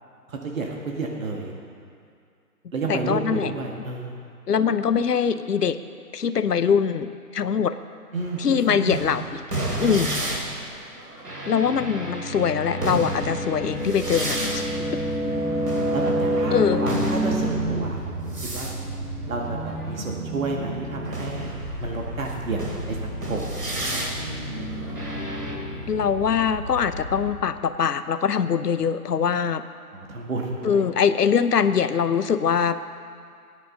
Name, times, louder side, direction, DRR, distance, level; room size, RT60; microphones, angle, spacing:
voice 1, 0.3-1.6 2.7-4.1 8.1-9.2 9.8-10.2 11.6-11.8 15.9-18.7 19.2-21.5 21.8-22.6 22.9-23.6 29.9-30.9, right 3 dB, 60° right, 0 dB, 1.8 m, -31 dB
voice 2, 2.9-3.5 4.5-5.8 6.1-7.7 8.4-9.4 9.8-10.1 11.5-15.0 16.5-16.8 25.9-29.6 30.6-32.8, left 7 dB, 80° left, 12 dB, 0.8 m, -23 dB
sound 1, 8.2-20.4 21.0-25.6, right 1 dB, 85° right, 3.1 m, -29 dB
Drum, 12.8-14.8, left 2 dB, 35° left, 2.5 m, -46 dB
sound 2, 13.6-27.3, equal, 15° right, 0.8 m, -35 dB
19.0 x 9.4 x 3.9 m, 2.3 s
figure-of-eight pair, 145°, 46 cm